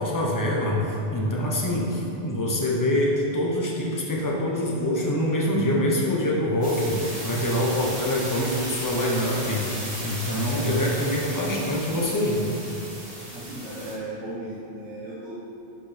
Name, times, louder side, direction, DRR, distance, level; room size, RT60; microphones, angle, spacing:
voice 1, 0.0-12.5, left 1 dB, 20° left, -3 dB, 1.0 m, -25 dB
sound 1, 6.6-13.9, right 1 dB, 30° right, 1.6 m, -35 dB
voice 2, 13.3-15.3, right 1 dB, 85° right, -8 dB, 1.5 m, -36 dB
11.5 x 5.1 x 3.5 m, 2.8 s
omnidirectional pair, 1.2 m